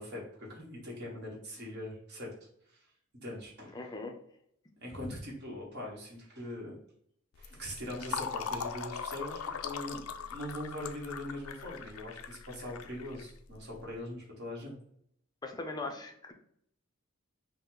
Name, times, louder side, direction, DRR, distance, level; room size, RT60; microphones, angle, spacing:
voice 1, 0.0-2.3 2.7-2.9 3.2-3.8 4.8-6.8 7.4-14.7, left 1 dB, 50° right, -2 dB, 1.3 m, -42 dB
voice 2, 3.7-4.2 15.4-16.3, left 2 dB, 20° left, 3 dB, 0.5 m, -39 dB
Fill (with liquid), 7.4-13.8, left 6 dB, 85° left, 0.4 m, -40 dB
5.4 x 2.1 x 3.8 m, 0.70 s
head